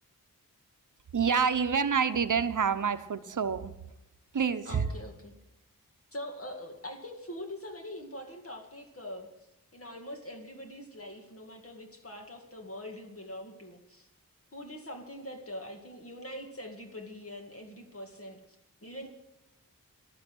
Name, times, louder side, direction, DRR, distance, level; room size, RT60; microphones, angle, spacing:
voice 1, 1.1-3.7 4.3-4.9, right 6 dB, 60° right, 0.9 m, -27 dB
voice 2, 4.6-5.3 6.1-9.3 9.7-14.1 14.5-18.6 18.8-19.1, left 1 dB, 40° left, 2.3 m, -43 dB
14.0 x 12.0 x 6.3 m
wide cardioid pair, 100°, 34 cm